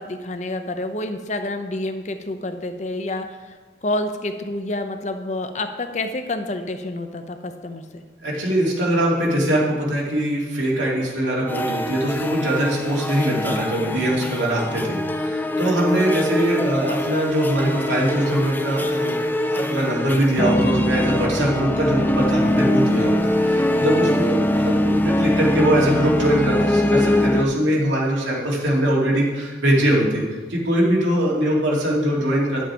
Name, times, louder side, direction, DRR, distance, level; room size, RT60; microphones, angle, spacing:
voice 1, 0.0-3.5 3.8-8.0, left 2 dB, 40° left, 8 dB, 0.7 m, -28 dB
voice 2, 8.2-19.2 19.5-30.2 30.5-32.6, right 1 dB, 90° right, -4 dB, 2.4 m, -22 dB
sound 1, 11.5-27.4, left 1 dB, 10° left, 0.3 m, -22 dB
10.0 x 7.3 x 4.4 m, 1.4 s
head